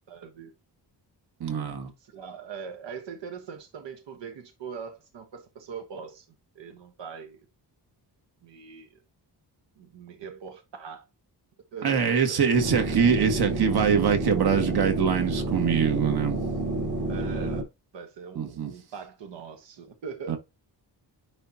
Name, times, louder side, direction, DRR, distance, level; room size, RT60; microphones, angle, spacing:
voice 1, 0.1-0.5 2.0-6.2 6.5-7.4 8.4-9.0 9.8-11.0 11.7-12.4 17.1-17.7 17.9-20.4, right 6 dB, 90° right, 1.3 m, -41 dB
voice 2, 1.4-1.9 11.8-16.4 18.3-18.7 20.3-20.4, right 7 dB, 65° right, 1.7 m, -24 dB
sound 1, 12.5-17.6, right 2 dB, 45° right, 1.9 m, -29 dB
10.0 x 3.6 x 2.9 m
wide cardioid pair, 175°, 42 cm